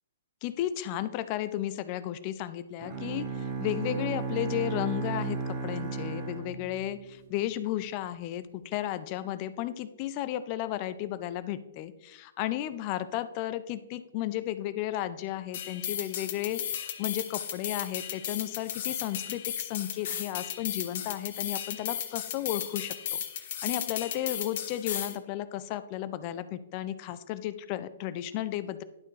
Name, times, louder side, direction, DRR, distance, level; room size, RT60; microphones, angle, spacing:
voice 1, 0.4-28.8, left 13 dB, 40° left, 13 dB, 0.4 m, -34 dB
Bowed string instrument, 2.8-7.2, right 5 dB, 30° right, 1.2 m, -34 dB
sound 1, 15.5-25.2, left 9 dB, 55° left, 0.8 m, -35 dB
11.5 x 4.2 x 3.3 m, 0.95 s
hypercardioid pair, 125°, 0 cm